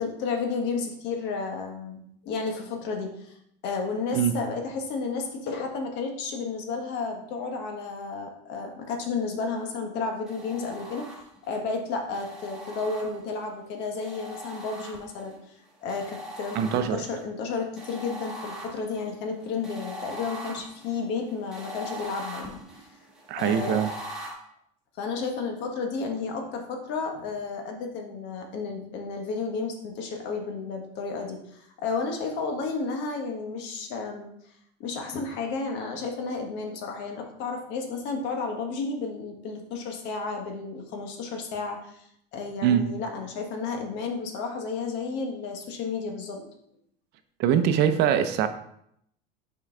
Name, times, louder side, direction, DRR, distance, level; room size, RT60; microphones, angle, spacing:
voice 1, 0.0-3.4 3.6-11.2 11.5-15.4 15.8-22.6 23.3-23.8 25.0-34.3 34.8-42.0 42.3-46.5, left 4 dB, 60° left, 3 dB, 1.3 m, -32 dB
sound 1, 10.3-11.5 12.1-13.5 14.0-15.3 15.9-17.2 17.8-24.3, equal, 5° right, 1.6 m, -41 dB
voice 2, 16.6-17.0 23.3-23.9 42.6-42.8 47.4-48.5, right 9 dB, 55° right, 9 dB, 0.6 m, -22 dB
5.6 x 4.5 x 3.8 m, 0.71 s
supercardioid pair, 120°, 21 cm